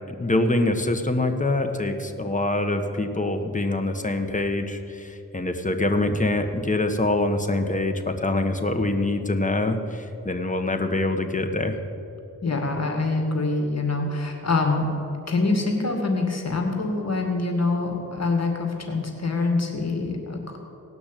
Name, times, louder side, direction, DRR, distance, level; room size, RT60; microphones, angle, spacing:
voice 1, 0.1-11.8, left 2 dB, 20° left, 5 dB, 1.4 m, -25 dB
voice 2, 12.4-14.9 15.3-20.6, left 3 dB, 45° left, 2 dB, 2.3 m, -25 dB
18.0 x 6.1 x 9.2 m, 2.7 s
cardioid pair, 60°, 35 cm